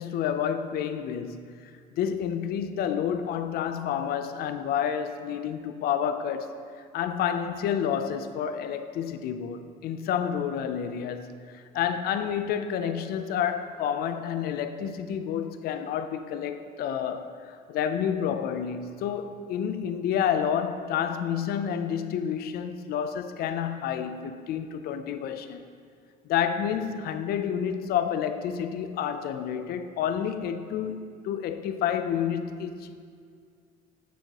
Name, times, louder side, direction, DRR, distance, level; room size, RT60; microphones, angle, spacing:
voice 1, 0.0-1.7 2.0-6.6 6.9-25.6 26.3-32.9, left 8 dB, 65° left, 0.4 m, -29 dB
9.0 x 4.6 x 2.9 m
cardioid pair, 110°, 17 cm